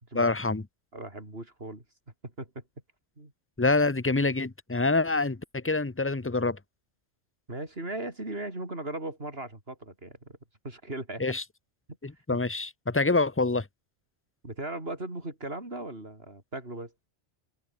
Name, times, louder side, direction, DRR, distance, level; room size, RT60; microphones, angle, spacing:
voice 1, 0.1-0.6 3.6-6.6 11.2-11.4 12.0-13.7, left 3 dB, 15° left, 0.6 m, -26 dB
voice 2, 0.9-1.9 2.2-2.6 3.2-3.3 7.5-10.4 10.6-11.2 12.3-12.4 14.4-16.9, right 2 dB, 55° right, 5.5 m, -38 dB
open air
omnidirectional pair, 1.2 m